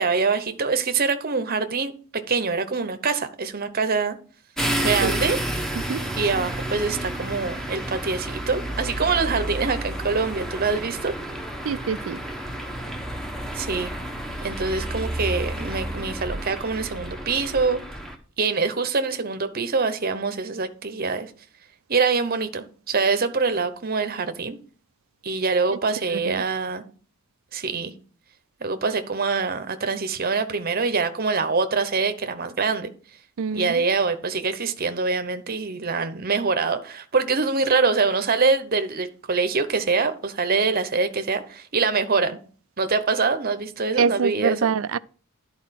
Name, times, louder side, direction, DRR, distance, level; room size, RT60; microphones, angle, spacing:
voice 1, 0.0-1.9 2.3-4.2 4.8-5.4 6.2-11.1 13.5-13.9 14.4-17.8 18.4-21.3 21.9-24.6 25.2-26.8 27.5-27.9 28.6-32.9 33.5-42.4 42.8-44.7, right 4 dB, 45° right, 0.9 m, -24 dB
sound 1, 4.6-18.2, right 1 dB, ahead, 1.0 m, -30 dB
voice 2, 11.6-12.2 26.3-26.4 33.4-33.8 44.0-45.0, right 6 dB, 65° right, 0.4 m, -25 dB
11.0 x 4.5 x 5.8 m
head